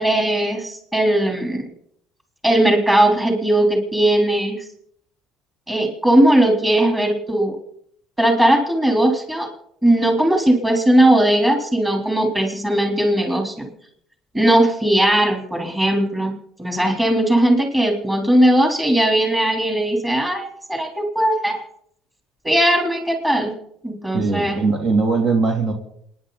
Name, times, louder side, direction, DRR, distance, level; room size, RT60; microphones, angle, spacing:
voice 1, 0.0-1.7 2.4-4.6 5.7-7.6 8.2-9.5 9.8-13.7 14.3-21.6 22.4-23.5 23.8-24.6, right 1 dB, 10° right, 2 dB, 3.6 m, -18 dB
voice 2, 24.1-25.7, right 4 dB, 50° right, 2 dB, 2.9 m, -20 dB
28.0 x 10.5 x 4.1 m, 0.69 s
cardioid pair, 120°, 0 cm